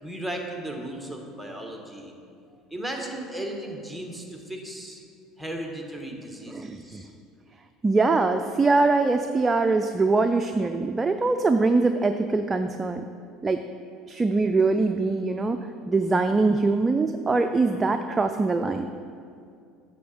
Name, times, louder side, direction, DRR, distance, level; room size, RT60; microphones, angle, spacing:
voice 1, 0.0-2.1 2.7-5.0 5.4-7.1, right 1 dB, 5° left, 1 dB, 1.4 m, -36 dB
voice 2, 6.5-7.0 7.8-13.0 13.4-13.6 14.1-18.9, right 3 dB, 20° right, 7 dB, 0.4 m, -23 dB
8.3 x 6.6 x 4.3 m, 2.4 s
hypercardioid pair, 75°, 0 cm